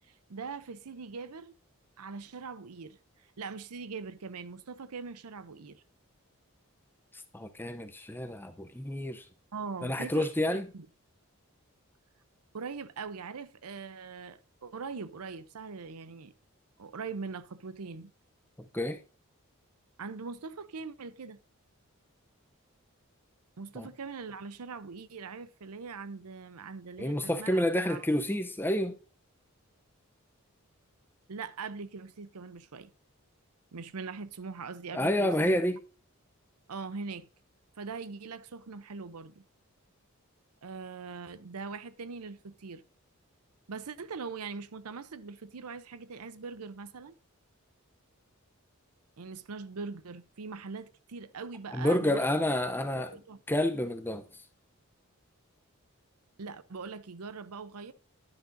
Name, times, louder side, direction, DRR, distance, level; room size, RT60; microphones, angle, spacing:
voice 1, 0.1-1.5 2.0-5.8 9.5-10.9 12.5-16.3 16.8-18.1 20.0-21.4 23.6-28.0 31.3-32.9 33.7-35.6 36.7-37.3 37.8-39.4 40.6-42.8 43.7-47.1 49.2-52.2 52.9-53.4 56.4-57.9, right 4 dB, 85° right, 0.7 m, -42 dB
voice 2, 7.3-9.2 9.8-10.7 18.7-19.0 23.8-23.9 27.0-29.0 34.9-35.8 51.7-53.1 53.5-54.2, left 1 dB, 10° left, 0.6 m, -29 dB
11.0 x 10.0 x 2.7 m
head